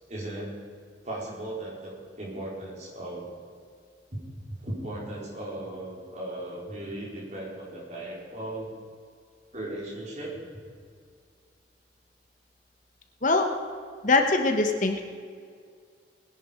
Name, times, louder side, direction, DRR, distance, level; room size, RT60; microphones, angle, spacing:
voice 1, 0.1-0.5 1.0-3.3 4.1-8.7 9.5-10.4, right 1 dB, 40° right, -4 dB, 4.2 m, -37 dB
voice 2, 14.0-15.0, left 3 dB, 45° left, 5 dB, 1.1 m, -22 dB
19.5 x 10.5 x 5.1 m, 2.1 s
head